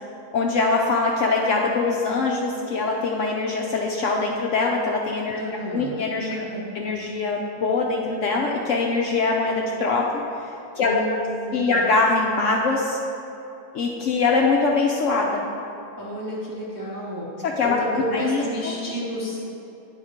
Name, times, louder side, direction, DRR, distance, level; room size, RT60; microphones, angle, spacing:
voice 1, 0.3-5.4 5.7-6.5 6.7-10.2 10.8-11.1 11.5-13.0 13.7-15.5 17.4-18.7, left 3 dB, 65° left, -1 dB, 0.8 m, -23 dB
voice 2, 5.3-5.9 6.3-6.6 10.8-11.9 16.0-19.6, equal, 20° right, -5 dB, 0.5 m, -31 dB
9.0 x 3.5 x 5.0 m, 2.9 s
omnidirectional pair, 1.7 m